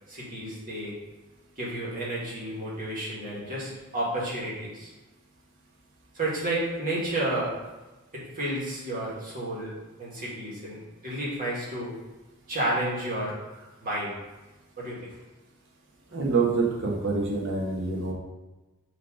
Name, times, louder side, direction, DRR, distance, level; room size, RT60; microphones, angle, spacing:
voice 1, 0.1-0.9 1.6-4.9 6.1-7.6 8.1-11.9 12.5-13.4 13.8-14.2 14.8-15.1, right 1 dB, 40° right, -5 dB, 1.9 m, -31 dB
voice 2, 16.1-18.1, right 4 dB, 60° right, -2 dB, 1.2 m, -26 dB
6.2 x 3.2 x 4.9 m, 1.1 s
head